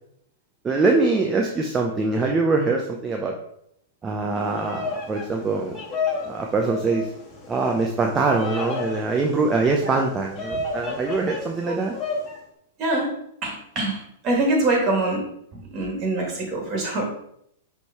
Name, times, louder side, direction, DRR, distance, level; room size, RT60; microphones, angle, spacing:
voice 1, 0.6-3.4 4.0-5.8 6.2-7.1 7.5-11.9, right 3 dB, 20° right, 1 dB, 0.7 m, -23 dB
Bird vocalization bird call bird song, 4.3-12.4, left 4 dB, 25° left, 1.9 m, -32 dB
voice 2, 12.8-13.1 13.4-17.0, right 2 dB, 35° right, 0 dB, 2.5 m, -24 dB
6.1 x 3.6 x 4.4 m, 0.72 s
hypercardioid pair, 110°, 0 cm